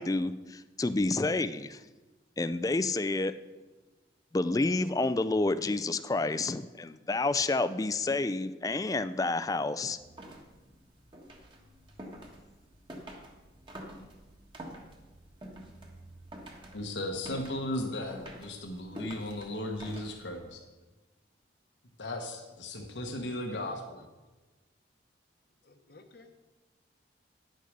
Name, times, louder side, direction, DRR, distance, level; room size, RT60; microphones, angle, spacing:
voice 1, 0.0-1.8 2.4-3.3 4.3-10.0, left 2 dB, 20° left, 13 dB, 0.3 m, -29 dB
sound 1, 10.0-20.5, right 1 dB, 25° right, 1.4 m, -48 dB
voice 2, 16.7-20.6 22.0-24.0, left 1 dB, 80° left, 2 dB, 1.2 m, -36 dB
voice 3, 23.3-23.8 25.7-26.4, left 3 dB, 55° left, 7 dB, 1.0 m, -53 dB
10.0 x 6.6 x 6.5 m, 1.2 s
head